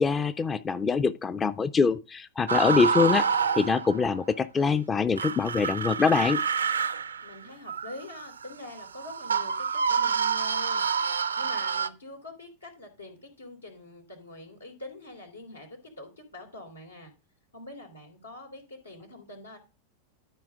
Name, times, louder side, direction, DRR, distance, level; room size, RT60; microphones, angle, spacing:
voice 1, 0.0-3.3 3.5-6.4, left 5 dB, 20° left, 0.5 m, -24 dB
sound 1, 2.5-4.2 5.2-11.9, right 6 dB, 80° right, 0.5 m, -28 dB
voice 2, 7.2-10.9 11.1-15.7 16.0-17.1 17.5-19.6, left 2 dB, 85° left, 3.2 m, -45 dB
12.5 x 4.9 x 3.6 m
figure-of-eight pair, 90°, 0 cm